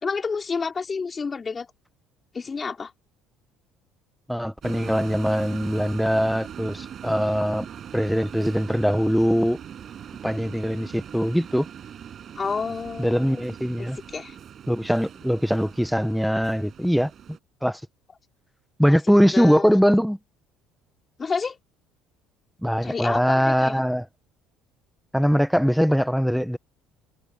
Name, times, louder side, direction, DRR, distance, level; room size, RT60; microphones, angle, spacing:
voice 1, 0.0-1.7 2.3-2.9 12.4-13.4 14.1-14.4 18.9-19.0 19.3-19.8 21.2-21.6 22.8-23.8, left 5 dB, 25° left, 4.2 m, -29 dB
voice 2, 4.3-7.7 7.9-9.6 10.2-11.7 13.0-14.0 14.7-17.1 17.6-17.8 18.8-20.2 22.6-24.1 25.1-26.6, equal, ahead, 1.1 m, -22 dB
German Train Station Ambience, 4.6-17.4, right 9 dB, 45° right, 6.1 m, -41 dB
supercardioid pair, 105°, 0 cm